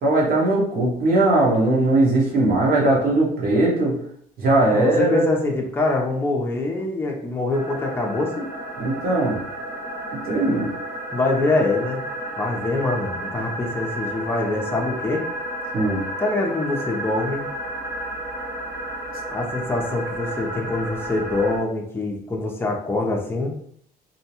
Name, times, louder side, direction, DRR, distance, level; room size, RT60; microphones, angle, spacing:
voice 1, 0.0-3.9 4.4-5.3 8.8-9.4 10.3-10.7 15.7-16.0, right 2 dB, 60° right, -3 dB, 1.2 m, -19 dB
voice 2, 4.7-8.5 11.1-12.0 12.4-15.3 16.2-17.4 19.3-23.5, left 2 dB, 15° left, 0 dB, 0.5 m, -24 dB
sound 1, 7.5-21.6, right 1 dB, 15° right, 0.9 m, -32 dB
2.7 x 2.2 x 2.8 m, 0.64 s
cardioid pair, 110°, 17 cm